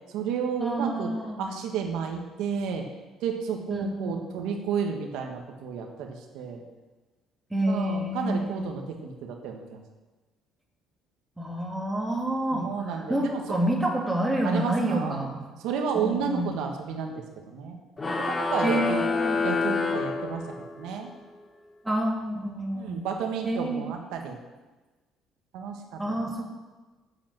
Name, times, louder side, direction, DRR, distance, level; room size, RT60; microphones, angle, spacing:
voice 1, 0.1-1.1 1.4-2.9 3.2-6.6 7.7-9.8 12.5-13.6 14.4-15.2 15.6-17.8 18.1-19.0 19.4-20.4 20.7-21.1 22.7-24.4 25.5-26.4, right 6 dB, 85° right, 3 dB, 1.5 m, -32 dB
voice 2, 0.6-1.4 3.7-4.2 7.5-8.7 11.4-15.4 15.9-16.5 18.6-19.4 21.8-23.1 23.4-23.9 26.0-26.4, right 1 dB, 10° right, -1 dB, 2.2 m, -28 dB
sound 1, 18.0-20.9, left 4 dB, 20° left, 1.1 m, -28 dB
8.4 x 8.0 x 7.4 m, 1.2 s
cardioid pair, 120°, 0 cm